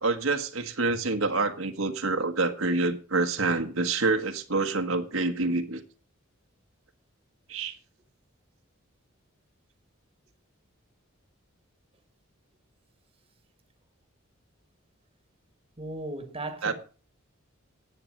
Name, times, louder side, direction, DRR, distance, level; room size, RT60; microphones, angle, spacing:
voice 1, 0.0-5.8 7.5-7.7 16.6-16.7, right 3 dB, 80° right, 1.5 m, -27 dB
voice 2, 15.8-16.7, right 2 dB, 25° right, 1.6 m, -36 dB
10.5 x 8.8 x 6.5 m
head